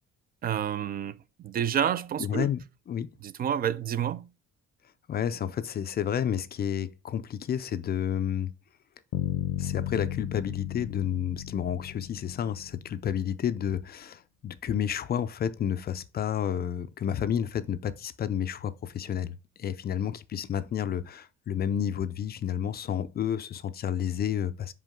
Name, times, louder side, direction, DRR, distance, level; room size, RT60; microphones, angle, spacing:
voice 1, 0.4-2.5 3.2-4.3, right 9 dB, 30° right, 0.4 m, -29 dB
voice 2, 2.2-2.6 2.9-3.1 5.1-8.5 9.6-24.7, left 9 dB, 35° left, 0.4 m, -30 dB
Bass guitar, 9.1-13.1, left 11 dB, 75° left, 0.7 m, -35 dB
5.6 x 5.2 x 3.6 m
cardioid pair, 160°, 30 cm